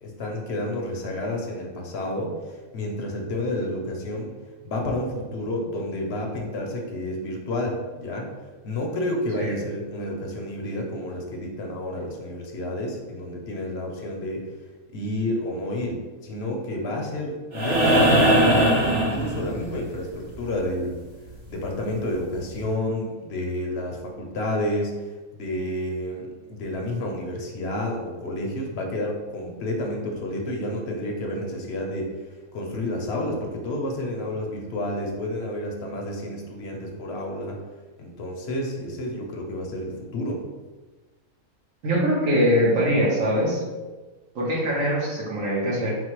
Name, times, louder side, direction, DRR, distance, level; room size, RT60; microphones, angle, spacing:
voice 1, 0.0-4.3 4.6-8.3 8.6-14.4 14.9-21.0 21.5-37.6 38.0-40.4, left 1 dB, 55° left, 1 dB, 0.9 m, -30 dB
sound 1, 17.5-19.8 21.7-21.8, right 1 dB, 30° right, 0.6 m, -19 dB
voice 2, 41.8-43.6 44.3-45.9, equal, 65° right, -3 dB, 1.3 m, -22 dB
4.3 x 2.1 x 4.5 m, 1.2 s
omnidirectional pair, 1.5 m